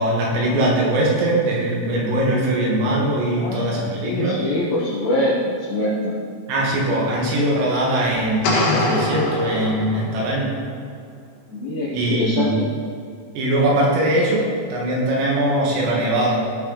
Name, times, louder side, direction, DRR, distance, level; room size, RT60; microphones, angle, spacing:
voice 1, 0.0-4.4 6.5-10.5 11.9-12.6 13.4-14.4 14.7-16.4, right 1 dB, 75° right, -4 dB, 4.6 m, -21 dB
voice 2, 3.4-6.2 11.5-12.7, left 1 dB, 65° left, -8 dB, 3.3 m, -24 dB
sound 1, 8.4-10.4, left 2 dB, 85° left, 4.6 m, -23 dB
17.5 x 6.1 x 4.2 m, 2.4 s
omnidirectional pair, 6.0 m